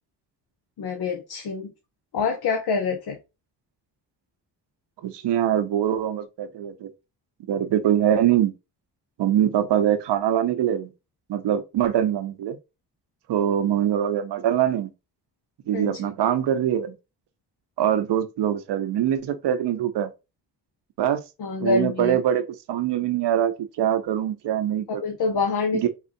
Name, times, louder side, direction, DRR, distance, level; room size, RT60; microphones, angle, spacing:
voice 1, 0.8-1.7 2.1-3.2 15.7-16.0 21.4-22.2 24.9-25.9, left 4 dB, 65° left, 0.9 m, -26 dB
voice 2, 5.0-6.9 7.5-8.5 9.2-10.9 11.3-12.6 13.3-14.9 15.7-16.9 17.8-20.1 21.0-21.2 21.6-22.4 22.7-25.0 25.7-25.9, right 10 dB, 85° right, 0.8 m, -23 dB
4.4 x 2.5 x 2.6 m
cardioid pair, 65°, 40 cm